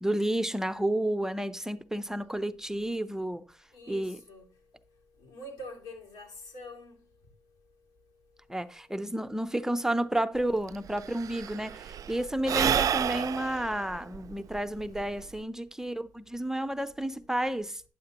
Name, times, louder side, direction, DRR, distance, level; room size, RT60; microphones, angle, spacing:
voice 1, 0.0-3.4 3.9-4.2 8.5-17.8, right 1 dB, 5° right, 0.7 m, -31 dB
voice 2, 3.7-4.5 5.2-7.0, left 1 dB, 85° left, 2.8 m, -45 dB
Sigh / Breathing, 10.4-10.5 10.7-15.4, right 9 dB, 55° right, 0.4 m, -30 dB
9.5 x 7.3 x 2.9 m
supercardioid pair, 60°, 7 cm